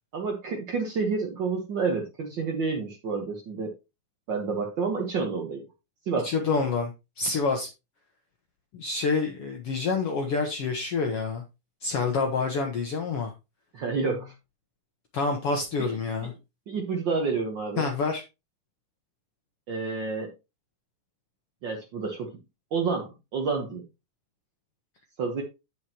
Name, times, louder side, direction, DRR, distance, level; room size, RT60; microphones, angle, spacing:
voice 1, 0.1-3.7 4.3-5.7 6.1-6.3 13.7-14.3 15.8-15.9 16.7-17.9 19.7-20.3 21.6-22.4 22.7-23.9 25.2-25.4, right 4 dB, 65° right, 1 dB, 1.1 m, -29 dB
voice 2, 6.2-6.9 7.2-7.7 8.7-11.4 11.8-13.3 15.1-16.3 17.8-18.2, left 4 dB, 60° left, 3 dB, 1.6 m, -27 dB
8.3 x 8.0 x 2.9 m, 0.25 s
omnidirectional pair, 3.7 m